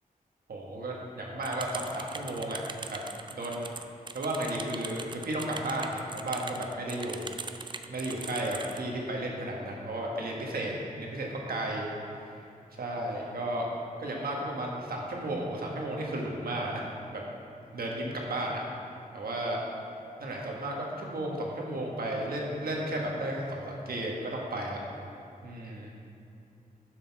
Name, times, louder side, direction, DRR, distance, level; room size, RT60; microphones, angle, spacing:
voice 1, 0.5-2.6 2.9-3.0 3.3-3.7 4.1-7.3 7.9-11.9 12.8-13.7 14.0-16.8 17.1-17.2 17.7-18.6 19.1-19.6 20.2-24.8 25.4-25.9, right 1 dB, 80° right, -2 dB, 1.4 m, -33 dB
sound 1, 1.4-8.8, right 4 dB, 30° right, 0.4 m, -41 dB
7.5 x 6.7 x 5.8 m, 2.6 s
wide cardioid pair, 145°, 15 cm